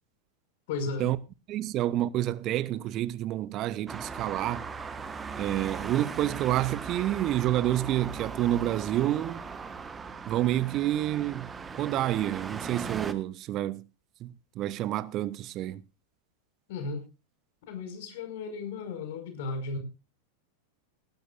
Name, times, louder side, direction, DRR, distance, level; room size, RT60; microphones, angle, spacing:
voice 1, 0.7-1.1 16.7-17.0 17.7-19.8, left 4 dB, 50° left, 5.1 m, -35 dB
voice 2, 1.5-4.7 5.4-9.4 10.3-13.9 14.2-15.8, right 13 dB, 35° right, 0.6 m, -29 dB
Traffic noise roadway noise, 3.9-13.1, right 5 dB, 15° right, 1.3 m, -39 dB
18.0 x 15.5 x 2.5 m
figure-of-eight pair, 90°, 0 cm